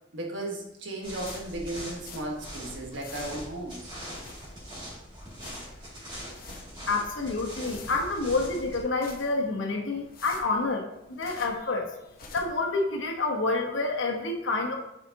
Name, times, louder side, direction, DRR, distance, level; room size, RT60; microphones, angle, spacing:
voice 1, 0.1-3.9, right 1 dB, 80° right, -1 dB, 1.5 m, -35 dB
sound 1, 1.0-8.8, equal, 25° right, 2.5 m, -42 dB
sound 2, 1.2-2.5 2.8-3.6 4.0-4.8 5.1-5.8 6.2-6.9 7.2-8.3 8.8-9.6 10.0-11.7 12.0-12.7, left 3 dB, 50° left, 0.9 m, -48 dB
voice 2, 6.9-11.9 12.3-14.8, left 3 dB, 85° left, 1 dB, 1.2 m, -28 dB
8.2 x 5.0 x 2.9 m, 0.86 s
head